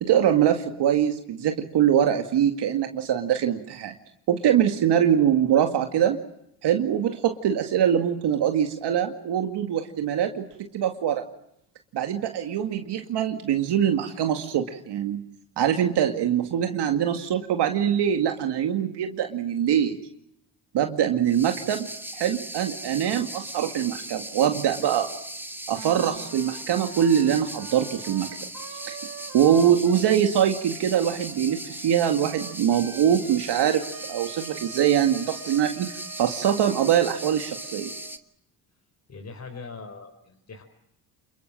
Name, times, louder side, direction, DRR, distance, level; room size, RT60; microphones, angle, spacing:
voice 1, 0.0-3.9 4.3-6.2 6.6-11.2 11.9-15.2 15.6-20.0 20.7-21.9 22.1-25.1 25.7-28.3 28.8-29.0 29.3-37.9, right 9 dB, 70° right, 5 dB, 2.2 m, -23 dB
sound 1, 21.2-38.2, right 1 dB, 5° right, 1.8 m, -38 dB
Wind instrument woodwind instrument, 25.7-38.2, right 6 dB, 45° right, 3.7 m, -45 dB
voice 2, 39.1-40.6, left 4 dB, 40° left, 5 dB, 4.9 m, -41 dB
28.0 x 22.0 x 7.5 m, 0.76 s
supercardioid pair, 75°, 43 cm